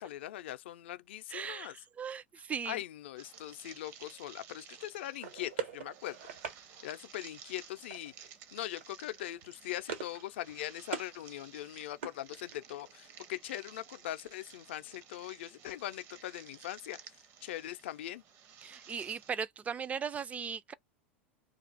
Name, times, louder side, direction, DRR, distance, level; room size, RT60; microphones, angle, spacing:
voice 1, 0.0-1.8 2.6-6.2 6.8-8.1 8.5-18.2, left 14 dB, 70° left, 0.4 m, -41 dB
voice 2, 1.3-2.8 18.6-20.7, right 6 dB, 20° right, 0.4 m, -38 dB
sound 1, 3.2-19.3, right 8 dB, 45° right, 0.7 m, -55 dB
sound 2, 5.2-6.6 7.9-8.3 8.6-8.8 9.2-10.2 10.5-11.1 11.5-12.8, right 7 dB, 75° right, 1.2 m, -42 dB
2.4 x 2.4 x 4.0 m
hypercardioid pair, 90°, 6 cm